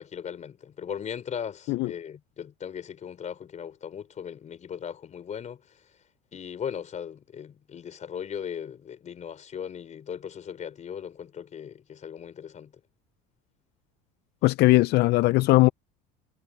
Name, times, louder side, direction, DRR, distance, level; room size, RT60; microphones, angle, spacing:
voice 1, 0.0-5.8 6.3-12.7, left 8 dB, 35° left, 4.4 m, -38 dB
voice 2, 14.4-15.7, left 20 dB, 55° left, 0.5 m, -19 dB
supercardioid pair, 100°, 20 cm